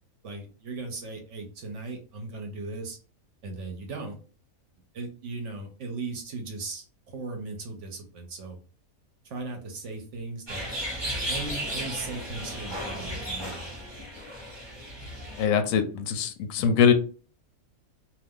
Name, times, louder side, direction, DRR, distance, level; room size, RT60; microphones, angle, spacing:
voice 1, 0.2-3.0 3.4-4.2 4.9-8.6 9.2-10.7 11.3-14.0, right 3 dB, 60° right, 4 dB, 1.0 m, -38 dB
sound 1, 10.5-15.5, equal, 20° right, 1.0 m, -34 dB
voice 2, 15.4-16.9, left 7 dB, 70° left, 8 dB, 0.9 m, -22 dB
2.6 x 2.4 x 3.5 m, 0.37 s
omnidirectional pair, 1.5 m